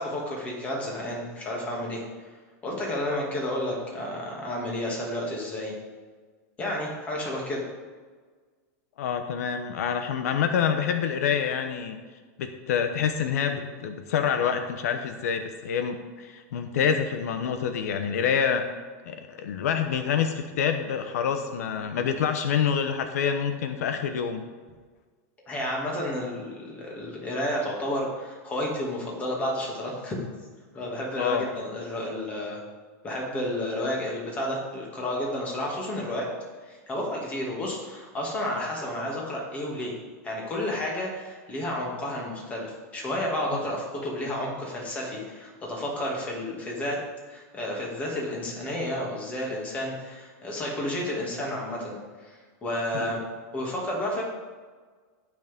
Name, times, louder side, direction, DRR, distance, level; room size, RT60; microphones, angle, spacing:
voice 1, 0.0-2.0 2.6-5.7 6.6-7.6 25.5-30.1 30.7-32.6 33.0-36.3 36.6-39.9 40.2-47.0 47.3-53.2 53.5-54.2, left 1 dB, 15° left, -2 dB, 2.3 m, -31 dB
voice 2, 9.0-12.0 12.4-18.6 19.1-24.4 31.2-31.5 52.9-53.1, left 7 dB, 75° left, 7 dB, 0.9 m, -27 dB
18.0 x 6.2 x 3.6 m, 1.5 s
supercardioid pair, 165°, 8 cm